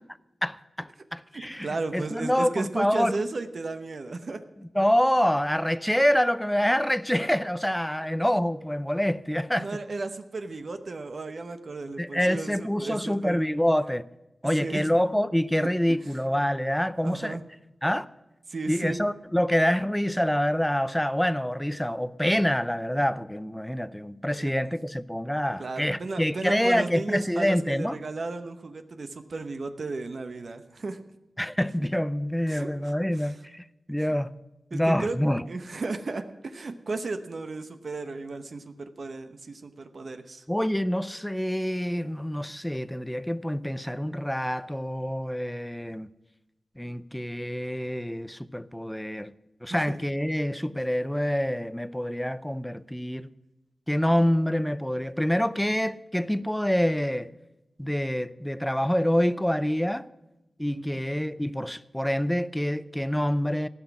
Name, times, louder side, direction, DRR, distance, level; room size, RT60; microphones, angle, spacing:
voice 1, 0.4-1.7 1.9-3.2 4.8-9.8 12.0-14.1 14.4-17.4 17.8-18.1 18.7-28.0 31.4-34.3 34.7-35.4 40.5-46.1 46.8-49.3 49.6-53.3 53.9-57.3 57.8-60.1 60.6-63.7, equal, 5° left, 0.5 m, -26 dB
voice 2, 1.3-4.4 9.6-13.4 14.6-14.8 17.0-17.4 18.5-19.0 24.4-24.5 25.6-31.0 32.5-32.7 33.1-33.4 34.0-34.1 34.7-35.2 35.5-40.4 49.9-50.0 60.7-60.8, right 3 dB, 60° right, 0.9 m, -34 dB
15.5 x 6.1 x 9.6 m
wide cardioid pair, 100°, 0 cm